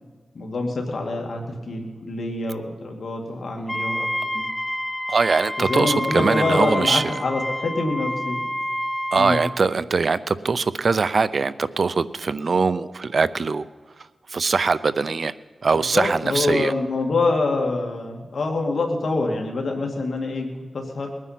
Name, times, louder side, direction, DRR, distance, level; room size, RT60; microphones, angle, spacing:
voice 1, 0.3-4.4 5.6-8.4 9.2-9.4 15.7-20.5 20.7-21.1, left 3 dB, 70° left, 1 dB, 2.2 m, -25 dB
Wind instrument woodwind instrument, 3.7-9.6, equal, 10° left, 1.0 m, -28 dB
voice 2, 5.1-7.0 9.1-13.7 14.3-15.3 15.6-16.7, right 4 dB, 60° right, 16 dB, 0.6 m, -22 dB
21.0 x 9.7 x 5.8 m, 1.4 s
cardioid pair, 65°, 0 cm